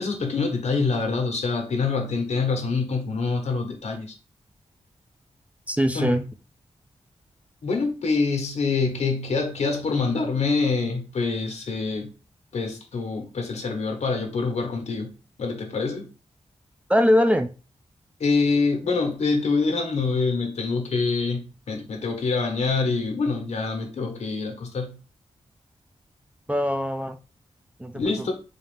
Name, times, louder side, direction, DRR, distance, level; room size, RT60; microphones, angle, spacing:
voice 1, 0.0-4.1 5.9-6.2 7.6-12.1 12.5-15.1 15.4-16.1 18.2-25.0 27.9-28.3, left 4 dB, 80° left, 1.0 m, -25 dB
voice 2, 5.7-6.3 16.9-17.5 26.5-27.2 27.8-28.3, equal, 10° right, 0.3 m, -22 dB
4.2 x 2.4 x 3.3 m
wide cardioid pair, 120°, 11 cm